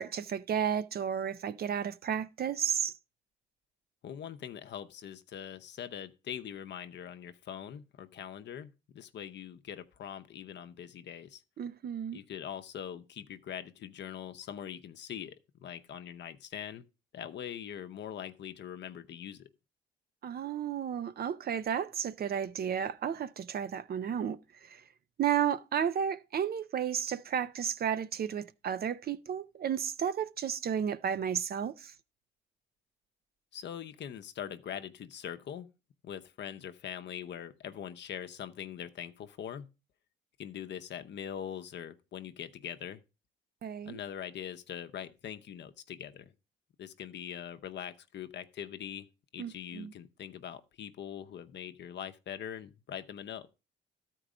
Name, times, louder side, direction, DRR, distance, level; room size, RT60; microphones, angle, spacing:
voice 1, 0.0-2.9 11.6-12.2 20.2-24.8 25.2-31.9 43.6-44.0 49.4-49.9, right 8 dB, 50° right, 0.6 m, -33 dB
voice 2, 4.0-11.4 12.1-16.8 17.1-19.5 33.5-35.7 36.0-39.7 40.4-43.0 43.8-46.3 46.8-49.1 49.3-53.5, left 9 dB, 60° left, 0.8 m, -42 dB
13.0 x 4.6 x 5.0 m
cardioid pair, 90°, 20 cm